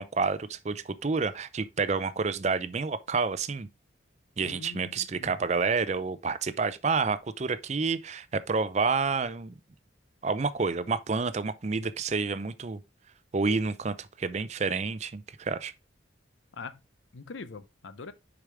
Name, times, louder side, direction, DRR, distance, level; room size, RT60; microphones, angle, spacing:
voice 1, 0.0-3.7 4.4-9.5 10.2-12.8 13.3-15.7, right 4 dB, 35° right, 0.5 m, -29 dB
voice 2, 4.4-5.4 16.5-16.8 17.1-18.1, left 4 dB, 75° left, 0.6 m, -43 dB
6.6 x 4.9 x 3.4 m
head